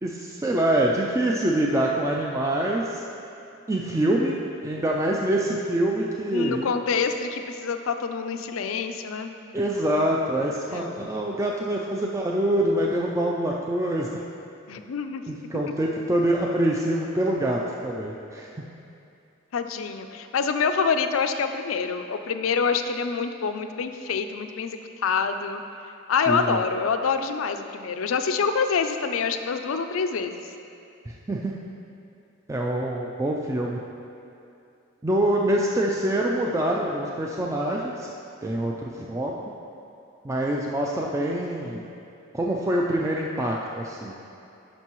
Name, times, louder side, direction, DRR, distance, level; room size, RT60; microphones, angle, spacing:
voice 1, 0.0-3.0 3.7-4.3 4.6-6.6 9.5-14.2 15.3-18.6 26.3-26.6 31.1-31.5 32.5-33.8 35.0-38.1 38.4-39.5 40.2-41.9 42.3-44.1, right 1 dB, 15° right, -1 dB, 0.3 m, -25 dB
voice 2, 6.3-9.3 10.7-10.9 14.7-15.3 19.5-25.6 26.1-30.4, left 5 dB, 85° left, 8 dB, 0.4 m, -26 dB
11.5 x 5.3 x 3.0 m, 2.7 s
head